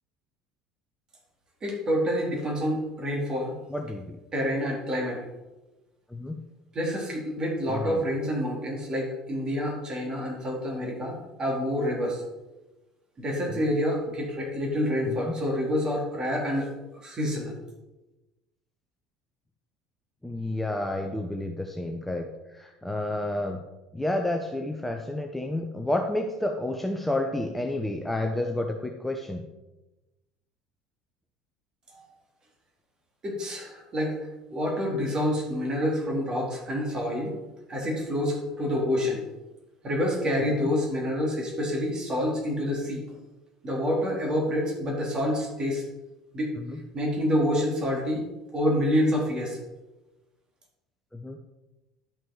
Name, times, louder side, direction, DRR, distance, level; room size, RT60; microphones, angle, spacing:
voice 1, 1.6-3.6 4.3-5.3 6.7-12.2 13.2-17.5 31.9-32.1 33.2-34.2 34.5-37.3 37.7-39.2 39.8-43.0 43.6-45.8 46.3-46.5 46.9-48.3 48.5-49.6, equal, 30° right, -1 dB, 3.6 m, -27 dB
voice 2, 3.7-4.2 6.1-6.4 7.7-8.0 13.5-13.7 15.1-15.3 20.2-23.6 23.9-29.4 40.6-40.7 46.6-46.8 51.1-51.4, left 1 dB, 5° left, 3 dB, 0.9 m, -30 dB
11.0 x 6.1 x 4.7 m, 1.1 s
figure-of-eight pair, 65°, 2 cm